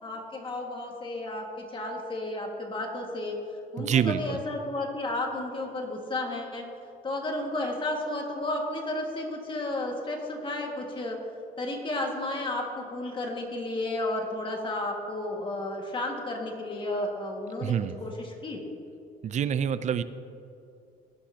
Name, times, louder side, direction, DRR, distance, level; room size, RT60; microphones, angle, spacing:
voice 1, 0.0-3.4 3.7-6.7 7.0-11.2 11.6-17.7 18.0-18.6, left 2 dB, 30° left, 1 dB, 2.0 m, -32 dB
voice 2, 3.8-4.4 17.6-17.9 19.2-20.0, right 8 dB, 45° right, 14 dB, 0.5 m, -26 dB
17.5 x 9.9 x 2.9 m, 2.6 s
cardioid pair, 110°, 17 cm